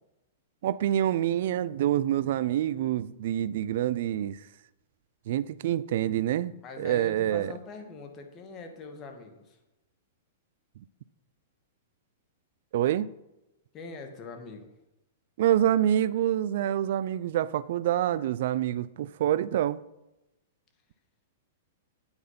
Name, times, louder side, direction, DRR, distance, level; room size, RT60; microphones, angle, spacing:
voice 1, 0.6-4.4 5.3-7.5 12.7-13.1 15.4-19.8, right 11 dB, 60° right, 0.5 m, -26 dB
voice 2, 6.6-9.6 13.7-14.7, left 3 dB, 30° left, 2.1 m, -43 dB
8.9 x 8.1 x 5.9 m
hypercardioid pair, 110°, 0 cm